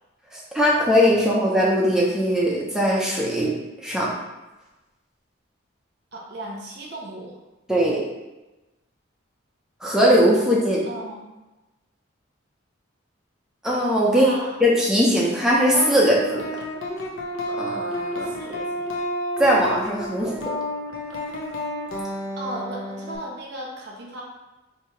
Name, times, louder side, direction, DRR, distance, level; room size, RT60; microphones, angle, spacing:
voice 1, 0.3-3.5 3.8-4.1 7.7-8.0 9.8-10.8 13.6-14.3 14.6-16.4 17.5-18.3 19.4-20.4, equal, 5° right, -4 dB, 0.6 m, -20 dB
voice 2, 6.1-7.3 10.8-11.2 14.1-14.6 18.2-18.9 22.4-24.2, right 1 dB, 55° right, -2 dB, 0.6 m, -35 dB
sound 1, 15.7-23.2, equal, 70° left, 0.6 m, -30 dB
2.8 x 2.8 x 4.4 m, 1.1 s
head